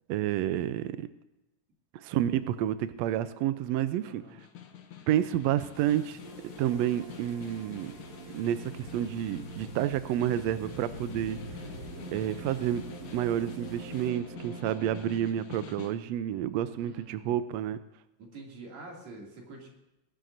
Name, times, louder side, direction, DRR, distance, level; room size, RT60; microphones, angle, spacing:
voice 1, 0.1-1.1 1.9-4.2 5.1-6.2 6.6-7.9 8.3-11.4 12.1-12.8 13.1-17.8, right 11 dB, 80° right, 12 dB, 1.5 m, -29 dB
voice 2, 4.0-4.4 16.8-17.4 18.2-19.7, right 2 dB, 60° right, -1 dB, 3.7 m, -47 dB
Snare drum, 4.2-16.1, left 8 dB, 65° left, 1.3 m, -48 dB
sound 1, 5.7-14.1, left 2 dB, 45° left, 1.2 m, -49 dB
sound 2, 6.2-15.0, right 4 dB, 30° right, 2.1 m, -45 dB
22.0 x 11.5 x 2.6 m, 0.96 s
omnidirectional pair, 3.6 m